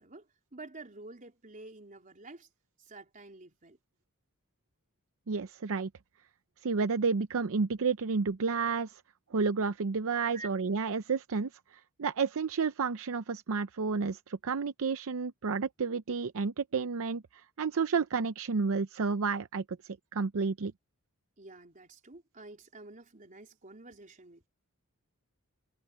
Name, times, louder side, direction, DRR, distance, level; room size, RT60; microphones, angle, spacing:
voice 1, 0.0-2.5 2.8-3.8 10.3-10.5 21.4-24.5, right 2 dB, 35° right, 3.7 m, -49 dB
voice 2, 5.3-5.9 6.6-9.0 9.3-20.7, right 5 dB, 65° right, 0.6 m, -31 dB
head